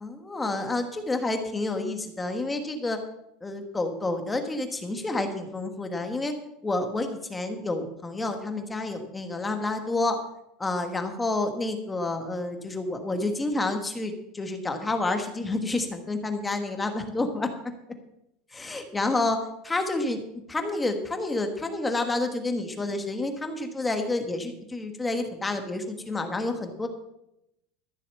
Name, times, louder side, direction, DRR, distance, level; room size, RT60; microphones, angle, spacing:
voice 1, 0.0-3.0 3.4-6.3 6.6-10.2 10.6-17.7 18.5-19.4 19.6-20.2 20.5-26.9, left 2 dB, 10° left, 6 dB, 1.4 m, -29 dB
13.5 x 7.0 x 7.4 m, 0.83 s
supercardioid pair, 160°, 0 cm